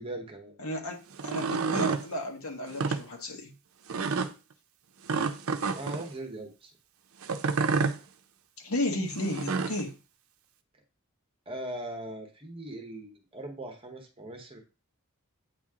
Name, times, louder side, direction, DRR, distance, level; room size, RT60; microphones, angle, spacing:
voice 1, 0.0-0.5 5.7-6.7 11.5-14.6, right 1 dB, 25° right, 3 dB, 1.1 m, -40 dB
voice 2, 0.6-3.5 8.6-9.9, left 1 dB, 75° left, 1 dB, 1.5 m, -33 dB
sound 1, 1.1-2.0 2.7-3.0 3.9-4.3 5.1-6.0 7.2-8.0 9.2-9.8, right 4 dB, 70° right, 0.6 m, -29 dB
8.4 x 3.1 x 3.7 m, 0.31 s
head